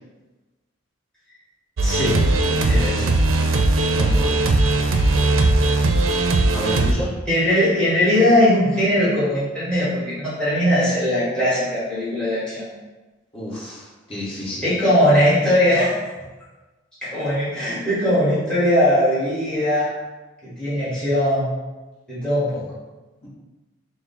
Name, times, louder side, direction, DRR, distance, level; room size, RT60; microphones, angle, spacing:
voice 1, 1.8-2.2 2.6-3.2 7.3-12.7 14.6-15.9 17.0-19.9 20.4-21.5 22.1-22.6, left 1 dB, 5° left, -11 dB, 1.4 m, -20 dB
sound 1, 1.8-6.9, right 2 dB, 80° right, 0.4 m, -18 dB
voice 2, 3.9-4.3 6.5-7.1 13.3-14.7 23.2-23.3, equal, 30° left, -8 dB, 1.1 m, -30 dB
4.7 x 2.0 x 3.9 m, 1.2 s
head